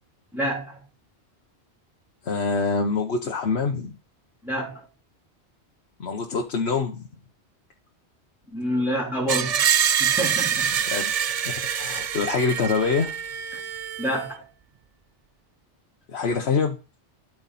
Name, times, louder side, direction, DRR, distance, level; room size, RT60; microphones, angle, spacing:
voice 1, 0.3-0.8 4.4-4.8 8.5-9.6 10.0-10.7 13.5-13.6 14.0-14.4, equal, ahead, 3.2 m, -27 dB
voice 2, 2.2-4.0 6.0-7.0 10.9-11.1 11.4-13.1 16.1-16.8, left 4 dB, 65° left, 1.2 m, -25 dB
Screech, 9.3-14.2, right 8 dB, 60° right, 0.4 m, -25 dB
12.5 x 4.7 x 4.1 m
omnidirectional pair, 1.2 m